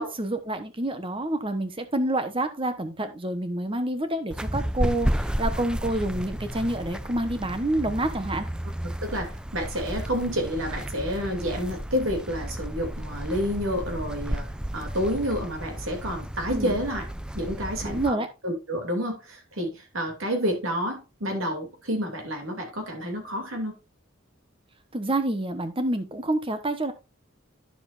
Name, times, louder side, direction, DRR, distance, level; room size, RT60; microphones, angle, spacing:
voice 1, 0.0-8.5 16.5-16.7 17.8-18.3 24.9-26.9, right 1 dB, 25° right, 1.1 m, -28 dB
sound 1, 4.3-18.1, equal, 5° right, 0.4 m, -32 dB
voice 2, 9.0-14.5 14.7-17.1 17.3-23.8, equal, 75° right, 2.8 m, -29 dB
10.5 x 7.0 x 2.6 m
head